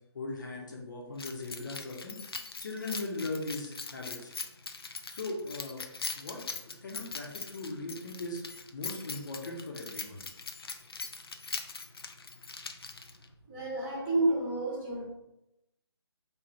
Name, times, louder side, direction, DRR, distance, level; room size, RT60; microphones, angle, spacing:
voice 1, 0.1-2.2 2.6-4.3 5.1-5.8 6.1-8.4 8.7-10.2, left 2 dB, 45° left, -1 dB, 1.1 m, -39 dB
Keys jangling, 1.2-13.3, left 4 dB, 60° left, 0.6 m, -41 dB
voice 2, 13.5-15.1, right 2 dB, 20° right, -5 dB, 1.1 m, -30 dB
4.0 x 2.9 x 4.4 m, 0.89 s
figure-of-eight pair, 150°, 14 cm